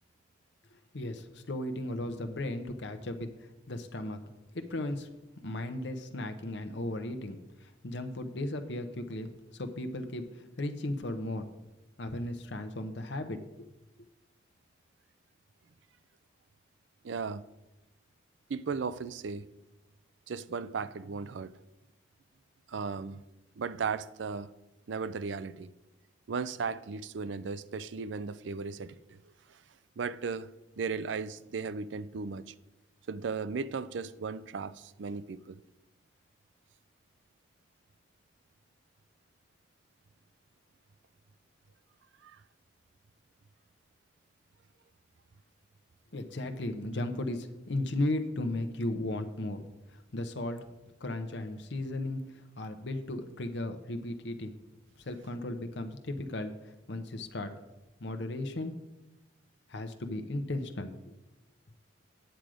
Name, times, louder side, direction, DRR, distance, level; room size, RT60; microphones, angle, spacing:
voice 1, 0.9-4.2 4.5-5.1 5.4-11.5 12.0-13.7 46.1-49.7 49.9-50.6 51.0-54.5 55.1-56.5 56.9-57.5 58.0-58.7 59.7-60.9, left 1 dB, 70° left, 0.8 m, -36 dB
voice 2, 17.0-17.5 18.5-19.4 20.3-21.6 22.7-23.2 23.6-24.5 24.9-25.7 26.3-29.2 29.5-29.6 30.0-30.5 30.8-32.5 33.1-35.6 42.2-42.4, right 5 dB, 75° right, 0.4 m, -36 dB
9.0 x 7.7 x 5.0 m
head